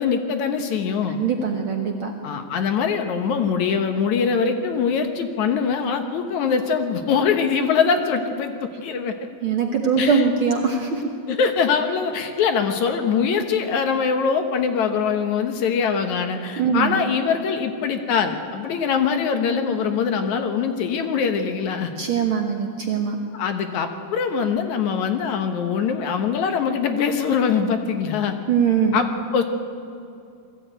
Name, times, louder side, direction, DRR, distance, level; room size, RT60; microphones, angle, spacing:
voice 1, 0.0-1.2 2.2-9.2 10.0-10.2 11.3-21.9 23.3-28.4 28.9-29.4, left 6 dB, 65° left, 6 dB, 2.2 m, -23 dB
voice 2, 1.1-2.1 9.4-11.0 16.6-17.0 22.0-23.2 28.5-29.0, right 6 dB, 60° right, 2 dB, 1.4 m, -22 dB
21.0 x 14.5 x 9.0 m, 2.5 s
omnidirectional pair, 4.0 m